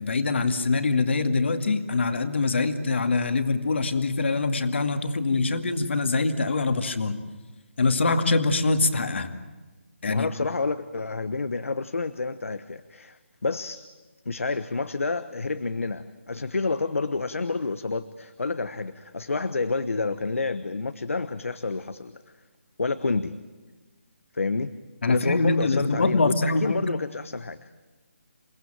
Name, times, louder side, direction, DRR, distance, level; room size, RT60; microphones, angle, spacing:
voice 1, 0.0-7.2 7.8-9.3 10.0-10.3 25.0-26.8, left 3 dB, 60° left, 7 dB, 2.3 m, -24 dB
voice 2, 10.1-13.9 14.2-22.1 22.8-23.4 24.3-24.7 25.1-27.7, left 3 dB, 90° left, 12 dB, 1.2 m, -29 dB
29.0 x 17.5 x 9.0 m, 1.3 s
hypercardioid pair, 170°, 7 cm